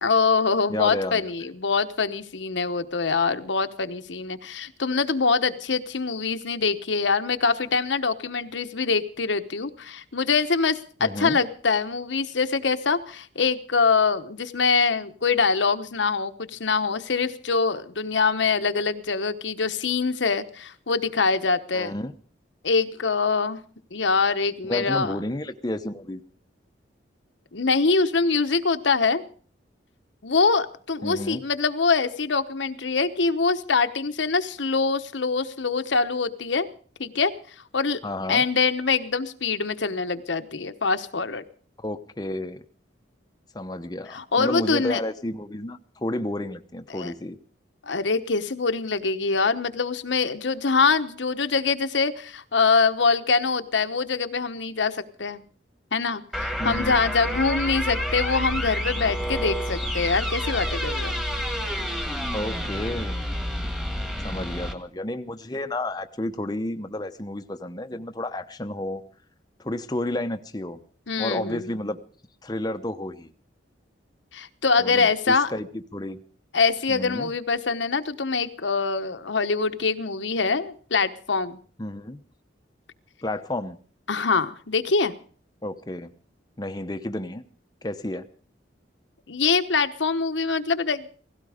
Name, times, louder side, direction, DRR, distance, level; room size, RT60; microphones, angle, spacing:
voice 1, 0.0-21.9 22.6-23.6 23.9-25.1 27.5-29.2 30.2-36.7 37.0-37.3 37.7-38.0 38.3-41.4 44.1-45.0 46.9-47.1 47.8-55.4 55.9-61.2 71.1-71.8 74.3-75.5 76.5-81.6 84.1-85.1 89.3-91.1, left 4 dB, 75° left, 9 dB, 1.1 m, -24 dB
voice 2, 0.7-1.3 11.0-11.4 21.7-22.1 24.6-26.2 31.0-31.4 38.0-38.4 41.8-42.6 43.5-47.4 56.6-57.0 62.3-63.4 64.2-69.0 69.6-70.8 71.2-72.0 72.4-73.3 74.8-76.2 76.9-77.3 81.8-82.2 83.2-83.8 85.6-86.1 86.6-87.4 87.8-88.3, left 1 dB, 20° left, 7 dB, 0.8 m, -31 dB
sound 1, 56.3-64.7, equal, 5° right, 1.7 m, -29 dB
17.5 x 16.0 x 5.0 m, 0.43 s
head